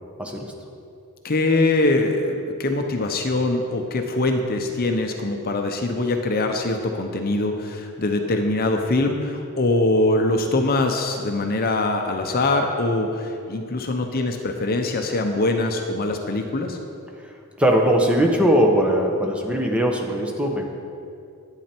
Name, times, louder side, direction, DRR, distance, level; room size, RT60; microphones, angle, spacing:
voice 1, 0.2-0.5 17.2-20.7, equal, 5° right, 1 dB, 0.9 m, -20 dB
voice 2, 1.2-16.8, left 2 dB, 40° left, 4 dB, 0.7 m, -23 dB
10.5 x 9.0 x 4.5 m, 2.5 s
head